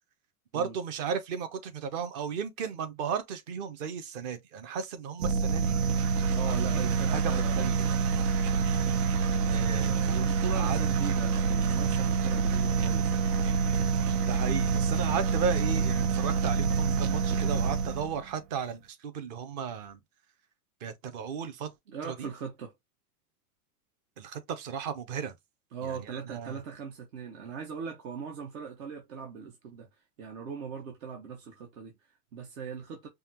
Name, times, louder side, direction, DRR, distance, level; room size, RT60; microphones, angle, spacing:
voice 1, 0.5-5.8 6.5-7.7 9.5-10.0 10.5-10.8 14.3-20.0 20.8-21.7 22.0-22.3 24.2-25.3 25.8-26.6, right 6 dB, 30° right, 0.6 m, -35 dB
sound 1, 5.2-18.2, right 5 dB, 90° right, 1.0 m, -27 dB
voice 2, 6.3-7.7 9.1-13.3 21.9-22.7 25.7-33.1, right 6 dB, 65° right, 1.5 m, -40 dB
5.5 x 2.3 x 2.8 m
supercardioid pair, 180°, 45 cm